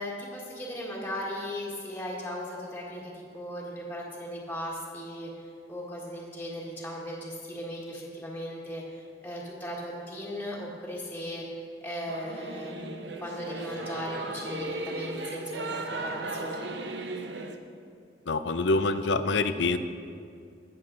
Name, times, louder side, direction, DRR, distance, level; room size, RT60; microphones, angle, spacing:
voice 1, 0.0-11.4 11.8-16.7, equal, 10° left, -5 dB, 1.6 m, -37 dB
Singing / Musical instrument, 12.1-17.6, right 2 dB, 70° right, 0.8 m, -36 dB
voice 2, 18.3-19.8, left 3 dB, 70° left, 11 dB, 0.6 m, -26 dB
20.0 x 7.2 x 3.9 m, 2.3 s
head